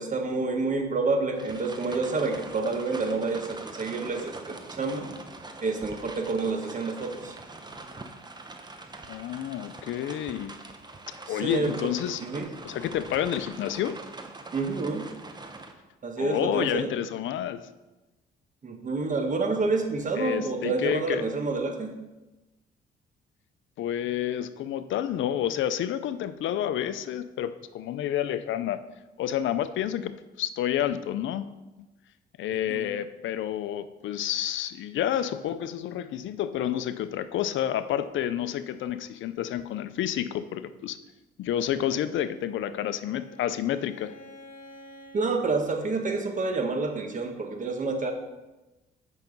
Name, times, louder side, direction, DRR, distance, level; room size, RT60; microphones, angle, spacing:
voice 1, 0.0-5.1 5.6-7.3 11.3-12.5 14.5-15.1 16.0-16.9 18.6-22.0 32.5-32.9 45.1-48.1, right 3 dB, 40° right, 4 dB, 1.3 m, -28 dB
sound 1, 1.3-15.7, right 2 dB, 20° right, 1.0 m, -43 dB
voice 2, 9.1-10.6 11.3-12.2 12.6-14.0 16.2-17.7 20.2-21.2 23.8-28.8 29.2-31.5 32.4-41.0 41.4-44.1, left 10 dB, 75° left, 13 dB, 0.6 m, -29 dB
Bowed string instrument, 42.1-45.3, left 1 dB, 40° left, 2.0 m, -50 dB
8.3 x 5.8 x 5.3 m, 1.1 s
cardioid pair, 90°, 20 cm